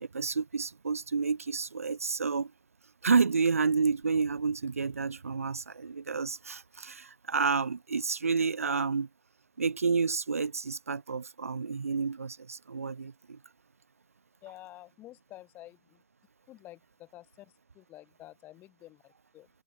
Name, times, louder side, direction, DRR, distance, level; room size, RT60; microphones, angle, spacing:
voice 1, 0.0-2.5 3.0-9.1 9.6-13.4, right 5 dB, 75° right, 0.6 m, -30 dB
voice 2, 14.4-16.0 16.5-19.5, left 15 dB, 25° left, 1.5 m, -50 dB
figure-of-eight pair, 115°, 8 cm